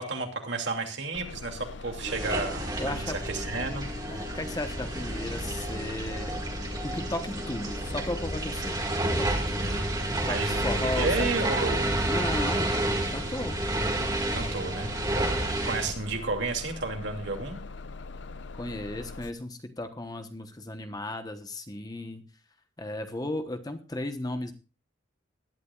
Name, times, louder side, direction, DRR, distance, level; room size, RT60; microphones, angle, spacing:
voice 1, 0.0-3.0 3.3-3.9 9.6-11.9 14.3-17.6, right 3 dB, 65° right, 3 dB, 2.7 m, -32 dB
Bus, 1.1-19.3, left 3 dB, 60° left, 0.6 m, -42 dB
sound 1, 2.0-15.9, right 1 dB, 20° right, 1.9 m, -30 dB
voice 2, 2.8-3.2 4.1-6.4 6.8-8.8 9.2-9.8 10.3-11.5 12.0-12.7 13.1-13.6 18.6-22.2 22.8-24.5, left 1 dB, 20° left, 8 dB, 1.1 m, -35 dB
19.5 x 11.5 x 2.4 m, 0.32 s
head